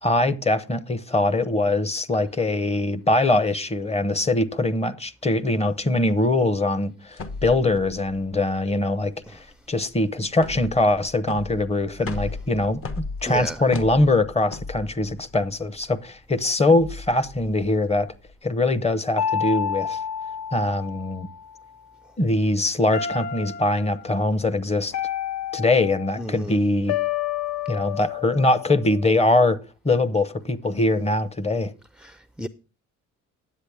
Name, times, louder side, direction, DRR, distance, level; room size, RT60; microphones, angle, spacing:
voice 1, 0.0-9.4 9.7-18.1 18.4-20.0 20.5-21.3 22.2-24.9 25.5-27.0 27.7-29.6 29.8-31.7, left 2 dB, 20° left, 0.8 m, -22 dB
sound 1, 7.1-18.3, left 3 dB, 45° left, 1.1 m, -37 dB
voice 2, 13.3-13.6 26.2-26.6 32.0-32.5, right 1 dB, 5° right, 0.4 m, -32 dB
sound 2, 19.2-21.5 22.9-23.9 24.9-26.2 26.9-29.3, left 9 dB, 65° left, 0.8 m, -29 dB
10.0 x 7.9 x 3.4 m
cardioid pair, 90°, 30 cm